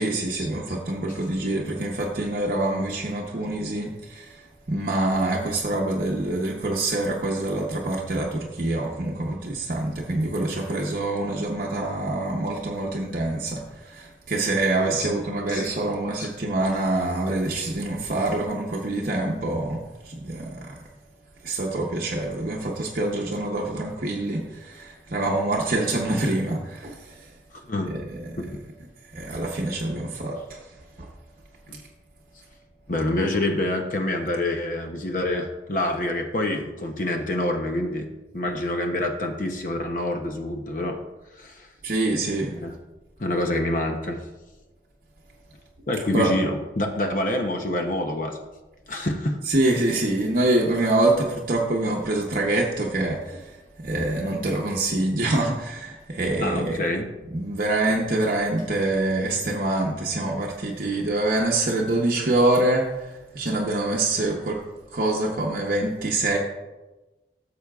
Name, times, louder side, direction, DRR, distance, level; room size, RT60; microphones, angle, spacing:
voice 1, 0.0-20.8 21.4-27.3 27.9-28.4 29.1-30.6 31.0-31.1 41.8-42.6 46.1-46.3 49.5-56.8 57.3-64.6 64.9-66.4, right 2 dB, 50° right, -2 dB, 0.8 m, -25 dB
voice 2, 14.8-15.2 15.5-15.7 16.2-16.3 27.5-27.9 28.4-28.5 31.7-31.8 32.9-38.1 38.3-41.0 41.4-41.7 42.6-42.7 43.2-44.2 45.9-48.4 48.9-49.4 56.4-57.1, left 1 dB, 45° left, 4 dB, 0.7 m, -27 dB
13.5 x 6.7 x 2.4 m, 1.1 s
head